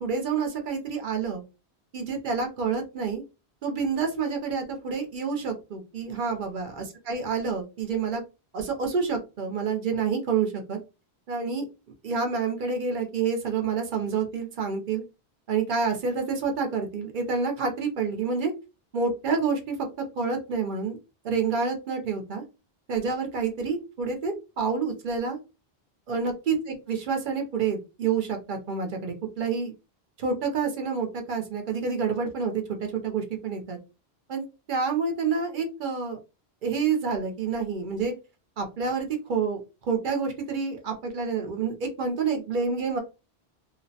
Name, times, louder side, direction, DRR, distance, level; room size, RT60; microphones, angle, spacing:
voice 1, 0.0-1.4 1.9-3.2 3.6-8.2 8.5-10.8 11.3-11.6 12.0-15.0 15.5-18.5 18.9-19.8 20.2-21.0 21.2-22.4 22.9-25.4 26.1-29.7 30.2-33.8 34.3-36.2 36.6-38.1 38.6-39.6 39.9-43.0, right 5 dB, 55° right, 3 dB, 0.7 m, -28 dB
2.5 x 2.0 x 2.6 m, 0.29 s
omnidirectional pair, 1.1 m